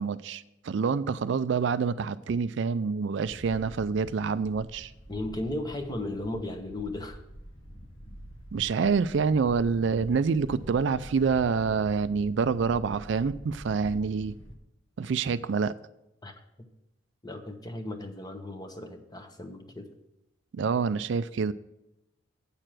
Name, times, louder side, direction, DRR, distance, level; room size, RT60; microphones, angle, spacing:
voice 1, 0.0-4.9 8.5-14.4 15.0-15.7 20.5-21.5, right 5 dB, 60° right, 0.4 m, -27 dB
Wind, 3.2-14.5, equal, 80° left, 1.7 m, -46 dB
voice 2, 5.1-7.2 16.2-16.7 17.2-19.9, left 1 dB, 20° left, 1.0 m, -36 dB
8.8 x 6.7 x 6.1 m
head